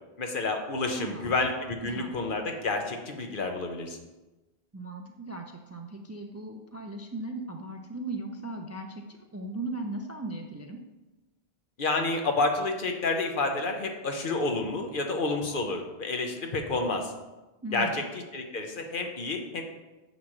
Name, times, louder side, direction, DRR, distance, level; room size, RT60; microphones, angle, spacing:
voice 1, 0.2-4.0 11.8-17.1 17.7-18.0 18.3-19.6, left 3 dB, 55° left, 4 dB, 1.0 m, -29 dB
voice 2, 0.8-1.3 1.8-2.1 4.7-10.8 17.6-18.0, right 2 dB, 20° right, 3 dB, 0.4 m, -38 dB
9.3 x 3.1 x 6.4 m, 1.1 s
omnidirectional pair, 1.0 m